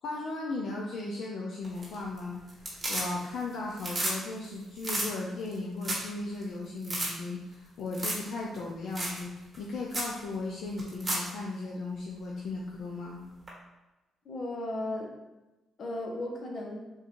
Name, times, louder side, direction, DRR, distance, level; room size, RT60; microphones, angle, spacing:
voice 1, 0.0-2.4 2.9-9.3 9.6-13.2, left 3 dB, 70° left, -2 dB, 0.4 m, -36 dB
sound 1, 1.6-2.2 2.5-3.4 3.7-4.2 4.4-4.5 4.8-5.1 5.5-5.6 5.8-6.1 6.4-6.5 6.8-7.1 7.9-8.3 8.5-8.6 9.0-9.2 9.5-9.6 9.9-10.1 10.8-11.3 13.5-13.6, right 1 dB, 30° right, 1.3 m, -32 dB
voice 2, 14.2-15.1 15.8-16.8, left 1 dB, 50° left, 0 dB, 0.8 m, -35 dB
3.6 x 2.6 x 2.9 m, 1.1 s
cardioid pair, 90°, 0 cm